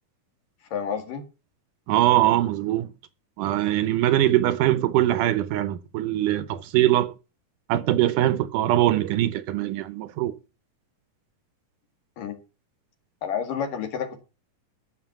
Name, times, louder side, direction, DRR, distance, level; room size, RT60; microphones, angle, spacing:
voice 1, 0.7-1.2 12.2-12.4 13.2-14.2, left 7 dB, 75° left, 3.6 m, -29 dB
voice 2, 1.9-2.9 3.4-7.1 7.7-10.3, right 13 dB, 75° right, 2.2 m, -22 dB
15.0 x 6.6 x 5.9 m
omnidirectional pair, 4.0 m